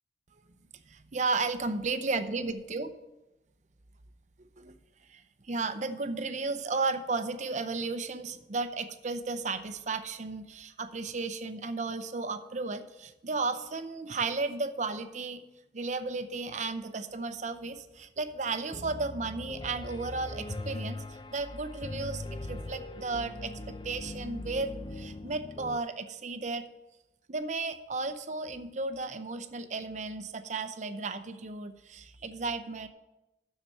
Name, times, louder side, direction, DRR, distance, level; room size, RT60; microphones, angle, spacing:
voice 1, 0.9-2.9 4.6-4.7 5.1-15.4 15.7-26.7 27.3-32.9, right 3 dB, 40° right, 10 dB, 0.7 m, -34 dB
Piano, 18.7-25.8, left 2 dB, 25° left, 0.5 m, -40 dB
7.4 x 6.6 x 7.7 m, 0.97 s
head